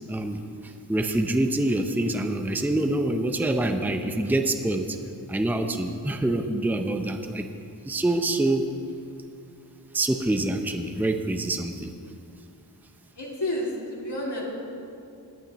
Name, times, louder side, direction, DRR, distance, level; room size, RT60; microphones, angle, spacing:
voice 1, 0.1-5.0 5.3-7.5 7.8-8.7 9.9-11.9, right 1 dB, 5° right, 6 dB, 0.6 m, -26 dB
voice 2, 13.2-14.4, left 1 dB, 80° left, -5 dB, 2.5 m, -30 dB
19.0 x 8.9 x 3.0 m, 2.5 s
wide cardioid pair, 60°, 41 cm